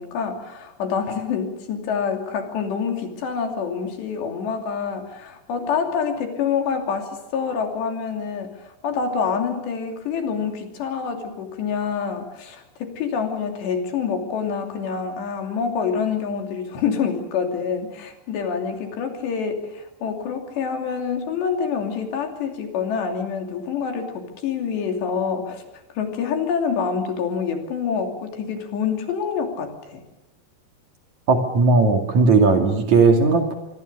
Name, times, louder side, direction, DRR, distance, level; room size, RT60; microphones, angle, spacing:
voice 1, 0.0-25.6 25.9-30.0, left 6 dB, 80° left, 4 dB, 5.0 m, -26 dB
voice 2, 31.3-33.6, right 4 dB, 45° right, 4 dB, 3.4 m, -17 dB
25.0 x 24.0 x 6.9 m, 0.96 s
omnidirectional pair, 5.0 m